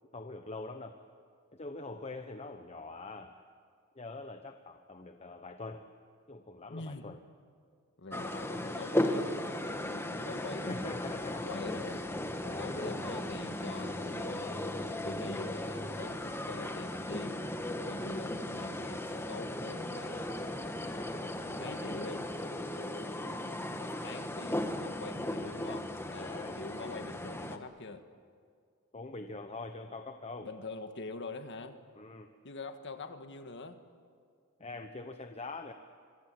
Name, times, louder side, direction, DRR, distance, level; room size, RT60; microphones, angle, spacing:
voice 1, 0.1-1.0 1.5-3.3 4.0-5.9 6.3-7.2 10.6-11.5 12.5-13.0 22.8-22.9 26.2-26.5 28.9-30.5 31.9-32.3 34.6-35.7, left 2 dB, 30° left, 7 dB, 1.0 m, -43 dB
voice 2, 6.7-7.1 8.0-10.9 11.2-12.1 12.4-17.5 17.9-20.3 20.8-22.3 23.4-28.0 30.4-31.8 32.4-33.8, left 3 dB, 55° left, 8 dB, 1.6 m, -44 dB
sound 1, 8.1-27.6, left 1 dB, 10° left, 1.3 m, -36 dB
26.0 x 24.0 x 7.7 m, 2.1 s
head